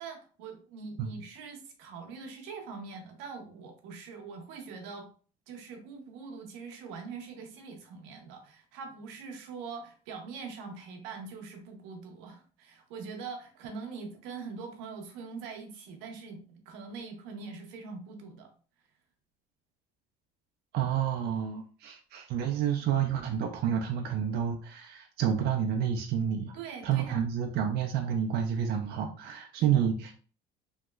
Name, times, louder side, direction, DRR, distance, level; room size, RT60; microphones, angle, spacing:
voice 1, 0.0-5.1 5.5-18.5 26.5-27.3 29.6-29.8, right 5 dB, 85° right, 4 dB, 0.8 m, -43 dB
voice 2, 20.7-26.5 26.8-30.1, right 8 dB, 55° right, 3 dB, 0.5 m, -29 dB
3.0 x 2.7 x 2.3 m, 0.40 s
supercardioid pair, 100°, 19 cm